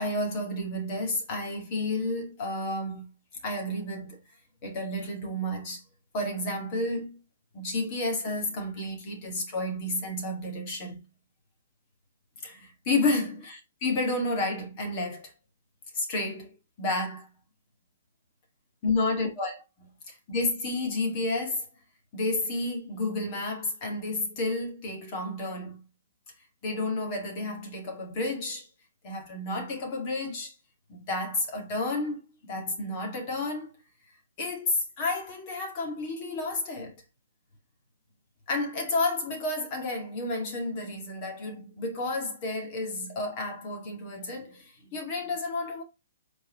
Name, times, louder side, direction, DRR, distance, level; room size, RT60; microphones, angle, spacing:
voice 1, 0.0-3.1 3.4-4.2 4.6-5.8 6.1-7.2 7.5-11.0 12.4-15.3 15.9-16.5 16.8-17.3 18.8-21.6 22.1-25.8 26.6-28.7 29.0-30.5 30.9-33.7 34.4-36.9 38.5-45.8, left 2 dB, 25° left, 2.1 m, -31 dB
8.2 x 4.6 x 3.1 m
hypercardioid pair, 175°, 0 cm